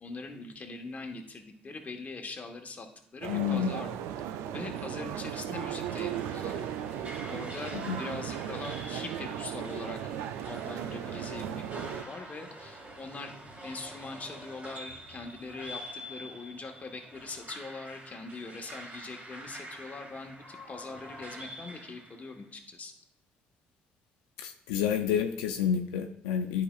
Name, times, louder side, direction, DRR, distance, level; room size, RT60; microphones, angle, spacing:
voice 1, 0.0-2.9 3.1-4.1 4.5-6.6 7.3-10.0 10.5-13.3 13.6-22.9, left 3 dB, 35° left, 4 dB, 1.3 m, -42 dB
sound 1, 3.2-12.0, right 10 dB, 80° right, 0.4 m, -36 dB
voice 2, 3.3-3.8 7.9-8.0 24.4-26.6, left 8 dB, 90° left, 6 dB, 0.4 m, -29 dB
sound 2, 5.6-22.4, right 1 dB, 35° right, 2.4 m, -46 dB
9.9 x 5.0 x 2.4 m, 0.67 s
supercardioid pair, 65°, 4 cm